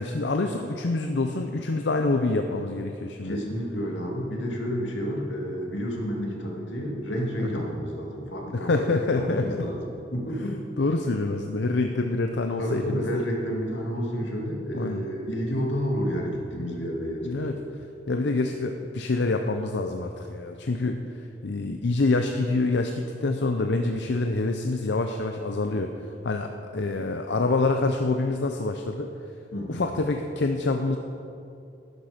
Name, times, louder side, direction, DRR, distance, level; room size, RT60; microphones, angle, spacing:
voice 1, 0.0-3.4 7.4-7.6 8.5-9.7 10.4-13.2 14.7-15.0 16.8-16.9 17.2-17.6 18.1-21.0 21.4-25.9 26.2-26.5 26.7-29.1 29.7-31.0, left 3 dB, 70° left, 5 dB, 0.6 m, -26 dB
voice 2, 3.2-10.7 12.6-17.6 29.5-29.9, equal, 85° left, -1 dB, 2.3 m, -30 dB
12.0 x 10.0 x 5.1 m, 2.7 s
head